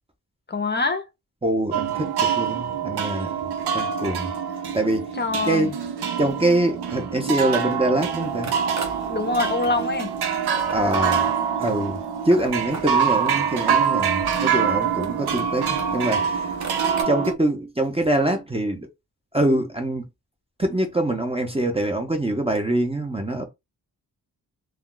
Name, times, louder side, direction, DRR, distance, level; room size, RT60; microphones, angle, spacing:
voice 1, 0.5-1.1 5.2-5.7 9.1-10.1, left 3 dB, 25° left, 0.6 m, -24 dB
voice 2, 1.4-3.4 3.7-4.3 4.7-5.1 5.5-5.8 6.2-8.5 10.7-11.3 11.6-12.0 12.2-16.5 17.1-18.9 19.3-20.1 20.6-23.4, right 1 dB, 15° right, 0.6 m, -24 dB
sound 1, 1.7-17.3, right 7 dB, 80° right, 0.6 m, -25 dB
sound 2, 8.2-17.0, right 4 dB, 45° right, 0.8 m, -40 dB
2.3 x 2.2 x 3.7 m
wide cardioid pair, 125°, 38 cm